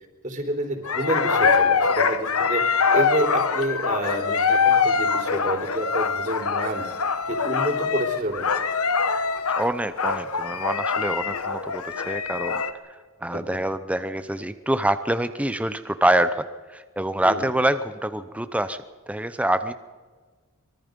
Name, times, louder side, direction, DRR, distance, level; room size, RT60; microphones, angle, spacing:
voice 1, 0.2-6.8 7.3-8.4 13.3-13.4 17.2-17.4, right 1 dB, 35° right, 3 dB, 3.7 m, -28 dB
sound 1, 0.8-12.7, left 5 dB, 85° left, 1.3 m, -23 dB
voice 2, 9.6-12.6 13.2-18.8 19.1-19.7, right 1 dB, 5° right, 11 dB, 0.6 m, -25 dB
24.5 x 23.0 x 5.3 m, 1.4 s
head